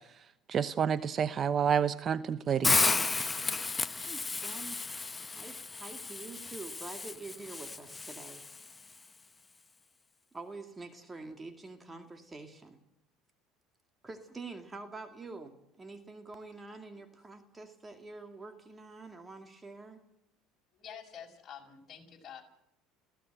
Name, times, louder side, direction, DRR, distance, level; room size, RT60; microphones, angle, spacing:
voice 1, 0.5-2.8, right 7 dB, 40° right, 15 dB, 0.8 m, -29 dB
Hiss, 2.6-8.7, left 3 dB, 20° left, 0.8 m, -33 dB
voice 2, 4.0-4.8 5.3-8.5 10.3-12.8 14.0-20.0, right 3 dB, 20° right, 7 dB, 2.2 m, -46 dB
voice 3, 20.7-22.4, left 8 dB, 40° left, 2 dB, 6.6 m, -48 dB
30.0 x 16.5 x 7.8 m, 0.85 s
supercardioid pair, 100°, 0 cm